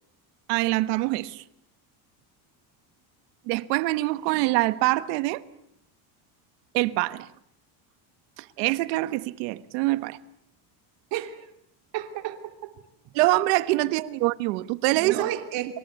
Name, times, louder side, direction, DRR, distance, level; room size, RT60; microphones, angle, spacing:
voice 1, 0.5-1.4 3.5-5.4 6.7-7.3 8.4-10.2 13.1-15.2, right 19 dB, 90° right, 1.4 m, -24 dB
voice 2, 11.1-11.5 11.9-12.8 14.9-15.8, right 13 dB, 65° right, 3.1 m, -32 dB
27.0 x 25.0 x 8.2 m
cardioid pair, 140°, 48 cm